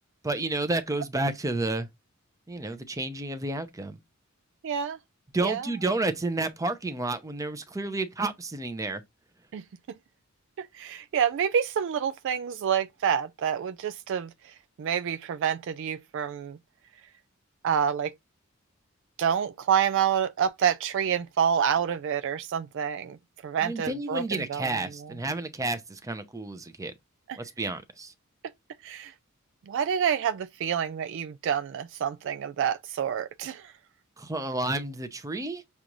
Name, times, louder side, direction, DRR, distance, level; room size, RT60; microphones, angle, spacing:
voice 1, 0.2-1.9 2.5-4.0 5.3-9.0 23.6-26.9 27.4-28.1 34.2-35.6, right 2 dB, 15° right, 0.7 m, -30 dB
voice 2, 4.6-5.0 5.4-5.7 9.5-9.6 10.6-16.6 17.6-18.1 19.2-23.2 23.4-25.1 27.3-27.4 28.8-29.1 29.7-33.7, right 8 dB, 60° right, 0.3 m, -28 dB
6.8 x 2.4 x 3.0 m
head